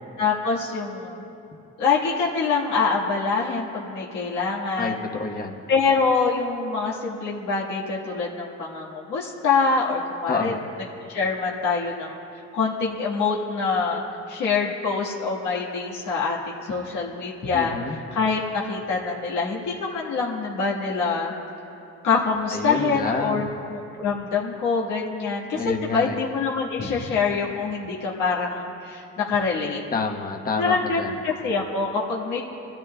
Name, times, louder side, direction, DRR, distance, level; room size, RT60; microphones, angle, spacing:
voice 1, 0.2-1.2 1.8-4.9 5.7-10.5 11.1-12.2 12.5-14.0 14.3-21.3 22.0-29.8 30.6-32.4, left 4 dB, 80° left, -4 dB, 1.7 m, -25 dB
voice 2, 4.8-5.6 10.3-10.6 17.5-18.0 22.5-23.5 25.5-26.2 29.9-31.2, left 4 dB, 30° left, 1 dB, 1.2 m, -28 dB
21.5 x 14.0 x 2.3 m, 2.8 s
cardioid pair, 90°, 30 cm